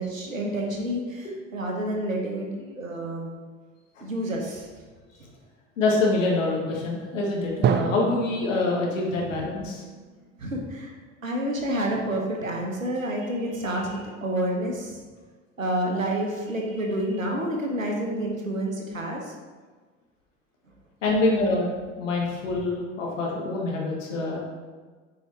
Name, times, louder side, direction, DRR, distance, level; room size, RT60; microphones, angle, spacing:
voice 1, 0.0-3.3 4.0-4.7 5.2-5.3 9.1-9.3 10.4-11.0 11.2-15.0 15.6-19.3, right 1 dB, 85° right, 0 dB, 1.2 m, -29 dB
voice 2, 5.8-9.8 21.0-21.7 22.0-24.4, left 2 dB, 75° left, -2 dB, 1.7 m, -25 dB
Drum, 7.6-11.3, right 7 dB, 30° right, 0.5 m, -30 dB
8.8 x 4.9 x 4.5 m, 1.4 s
figure-of-eight pair, 60°, 39 cm